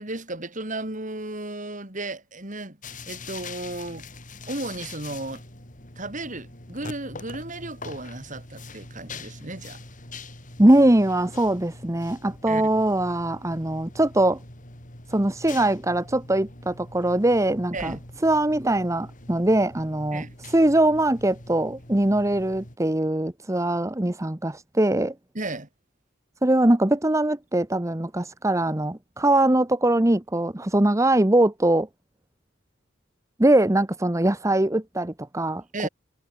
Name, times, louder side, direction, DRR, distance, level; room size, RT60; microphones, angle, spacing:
voice 1, 0.0-2.8 3.1-4.1 4.5-5.4 6.0-9.8 12.5-12.7 17.7-18.0 20.1-20.4 25.3-25.7 35.7-35.9, right 2 dB, 40° right, 3.8 m, -34 dB
sound 1, 2.8-22.8, left 3 dB, 40° left, 5.9 m, -43 dB
voice 2, 10.6-14.4 15.1-18.0 18.2-25.1 26.4-31.9 33.4-35.9, right 1 dB, 15° right, 0.9 m, -22 dB
head